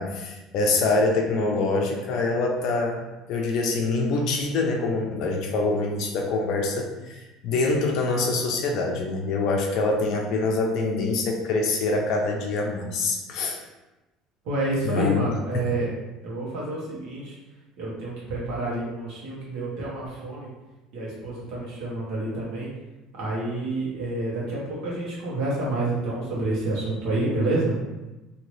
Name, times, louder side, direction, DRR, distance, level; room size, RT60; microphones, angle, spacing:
voice 1, 0.0-3.0 3.3-13.6 14.8-15.1 15.5-15.7, left 3 dB, 50° left, 1 dB, 0.5 m, -25 dB
voice 2, 14.4-15.9 16.2-17.3 17.8-20.5 20.9-22.7 23.2-27.7, right 2 dB, 55° right, -6 dB, 1.3 m, -28 dB
2.8 x 2.7 x 3.2 m, 1.1 s
cardioid pair, 170°, 0 cm